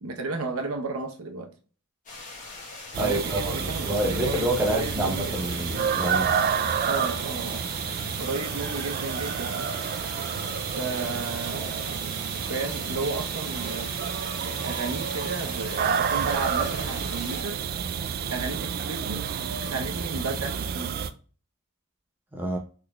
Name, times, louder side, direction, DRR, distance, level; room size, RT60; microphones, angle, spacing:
voice 1, 0.0-1.5 3.0-5.4 6.9-7.7 8.2-9.7 10.8-11.9 12.5-13.9 14.4-17.6 18.3-19.3 19.6-20.9, right 3 dB, 75° right, 0.8 m, -33 dB
sound 1, 2.1-17.4, left 3 dB, 40° left, 1.3 m, -42 dB
sound 2, 2.9-21.1, right 7 dB, 45° right, 0.3 m, -29 dB
voice 2, 3.0-6.3 22.3-22.6, right 1 dB, 10° right, 0.6 m, -28 dB
3.9 x 3.3 x 2.3 m
head